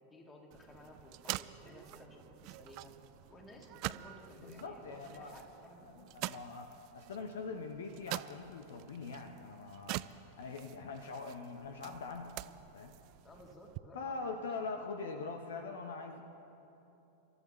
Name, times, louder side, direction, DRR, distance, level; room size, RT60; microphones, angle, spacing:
voice 1, 0.0-2.9 3.3-6.1 13.2-14.7, left 1 dB, 20° left, 1 dB, 2.4 m, -55 dB
sound 1, 0.5-13.8, right 18 dB, 45° right, 0.3 m, -46 dB
voice 2, 4.4-5.3 5.8-10.0 10.4-12.3 12.7-12.9 13.9-16.2, left 4 dB, 60° left, 5 dB, 1.0 m, -43 dB
29.0 x 14.0 x 3.2 m, 2.9 s
figure-of-eight pair, 90°, 0 cm